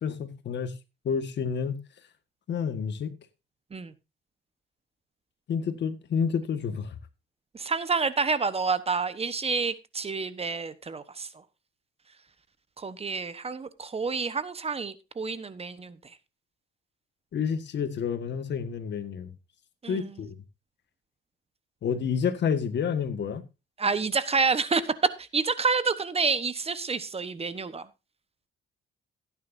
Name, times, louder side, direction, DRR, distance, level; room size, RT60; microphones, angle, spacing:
voice 1, 0.0-0.7 1.1-1.8 2.5-3.1 5.5-7.0 17.3-19.3 19.9-20.4 21.8-23.4, left 6 dB, 60° left, 1.7 m, -29 dB
voice 2, 7.5-11.3 12.8-16.0 19.8-20.0 23.8-24.8 25.2-27.8, right 4 dB, 30° right, 1.1 m, -28 dB
16.0 x 9.6 x 2.7 m
cardioid pair, 90°, 20 cm